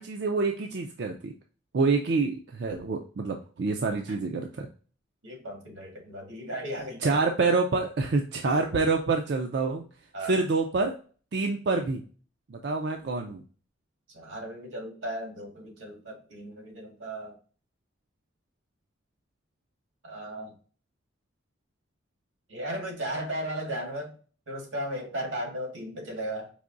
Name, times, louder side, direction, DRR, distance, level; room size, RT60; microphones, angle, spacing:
voice 1, 0.0-1.3 1.7-4.7 7.0-9.8 10.2-11.0 11.3-12.0 12.5-13.4, right 3 dB, 55° right, 3 dB, 0.4 m, -27 dB
voice 2, 5.2-7.2 10.1-10.4 14.1-17.3 20.0-20.5 22.5-24.1 24.5-26.5, right 1 dB, 90° right, 0 dB, 1.8 m, -36 dB
4.8 x 3.0 x 2.5 m, 0.39 s
head